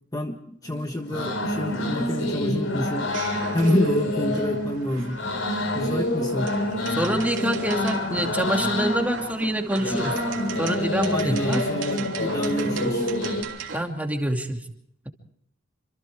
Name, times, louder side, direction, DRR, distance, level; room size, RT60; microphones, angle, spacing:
voice 1, 0.1-3.1 3.5-5.2 5.7-6.5 11.1-13.1, left 1 dB, 20° left, 4 dB, 1.4 m, -27 dB
sound 1, 0.6-13.4, left 1 dB, 85° left, 5.1 m, -27 dB
sound 2, 3.1-13.8, right 6 dB, 70° right, 3.2 m, -39 dB
voice 2, 7.0-10.2 10.6-11.7 13.7-14.6, right 1 dB, 10° right, 3 dB, 2.6 m, -26 dB
27.5 x 26.5 x 3.6 m, 0.70 s
head